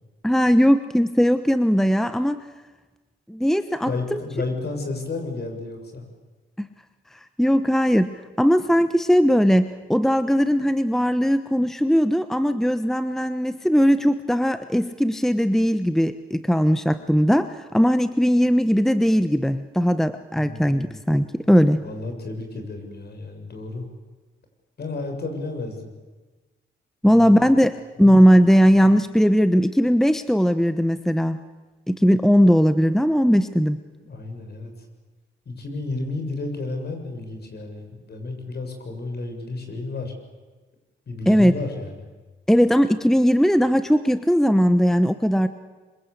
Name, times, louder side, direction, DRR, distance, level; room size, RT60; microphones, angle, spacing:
voice 1, 0.2-2.4 3.3-4.2 6.6-6.7 7.4-8.1 8.4-21.8 27.0-27.7 28.0-31.4 31.9-33.8 41.3-41.5 42.5-45.5, equal, ahead, 11 dB, 1.0 m, -19 dB
voice 2, 3.8-6.1 20.4-21.0 21.8-23.9 24.8-25.9 27.0-27.5 28.0-28.3 34.1-34.7 35.5-40.1 41.1-41.9, left 3 dB, 50° left, 5 dB, 7.0 m, -32 dB
26.0 x 25.0 x 8.4 m, 1.3 s
cardioid pair, 80°, 21 cm